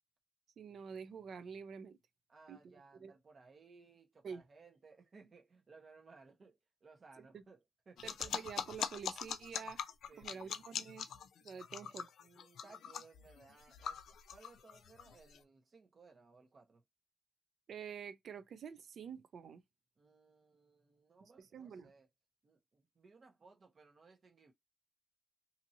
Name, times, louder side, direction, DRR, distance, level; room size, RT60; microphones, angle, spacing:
voice 1, 0.6-2.0 2.5-2.7 3.0-3.1 4.2-4.4 7.3-7.4 8.0-9.8 10.2-11.1 11.4-12.1 17.7-19.6 21.4-21.9, right 6 dB, 55° right, 0.5 m, -48 dB
voice 2, 2.3-8.3 10.1-10.5 12.2-16.8 20.0-22.1 22.4-24.5, right 4 dB, 35° right, 1.0 m, -62 dB
sound 1, 8.0-15.4, left 8 dB, 80° left, 0.4 m, -42 dB
2.8 x 2.7 x 2.7 m
wide cardioid pair, 170°, 0 cm